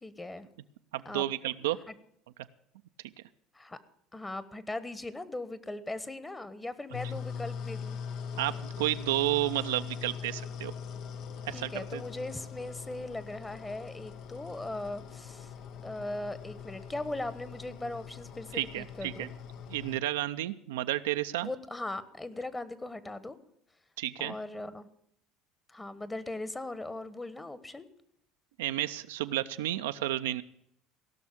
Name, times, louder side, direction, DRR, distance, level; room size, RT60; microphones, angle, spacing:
voice 1, 0.0-0.5 1.0-1.3 1.9-2.0 3.5-3.8 4.1-8.0 11.5-15.5 15.8-19.3 21.4-23.4 24.2-24.9 25.7-27.9, left 2 dB, 15° left, 15 dB, 1.2 m, -39 dB
voice 2, 0.9-1.8 8.4-10.7 11.5-12.0 18.5-19.3 19.7-21.5 24.0-24.3 28.6-30.4, right 15 dB, 80° right, 10 dB, 0.5 m, -31 dB
sound 1, 6.9-20.0, left 6 dB, 60° left, 0.8 m, -42 dB
17.0 x 6.3 x 8.5 m, 0.72 s
hypercardioid pair, 70°, 0 cm